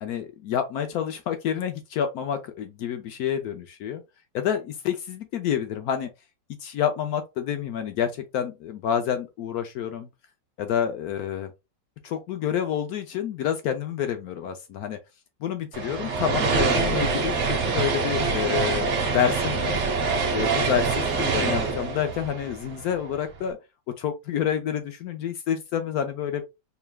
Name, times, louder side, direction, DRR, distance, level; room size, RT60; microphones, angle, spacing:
voice 1, 0.0-4.0 4.3-6.1 6.6-10.1 10.6-11.5 12.0-15.0 15.4-19.7 20.3-23.6 24.0-26.4, left 9 dB, 70° left, 0.9 m, -28 dB
sound 1, 15.7-23.2, right 4 dB, 50° right, 1.0 m, -25 dB
4.6 x 3.3 x 2.2 m
omnidirectional pair, 2.0 m